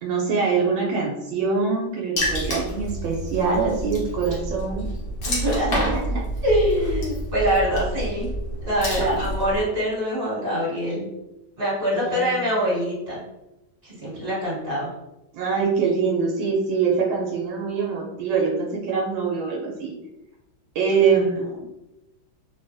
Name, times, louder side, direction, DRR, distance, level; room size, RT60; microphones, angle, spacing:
voice 1, 0.0-4.9 9.0-9.2 11.9-12.3 15.3-19.9 20.7-21.5, right 5 dB, 80° right, -2 dB, 1.3 m, -24 dB
Water / Splash splatter, 2.2-9.6, equal, 55° left, 0.9 m, -28 dB
voice 2, 5.2-8.3 8.6-11.1 11.6-13.2 13.8-14.9, equal, 30° right, -8 dB, 1.6 m, -24 dB
3.4 x 2.2 x 2.5 m, 0.96 s
omnidirectional pair, 2.1 m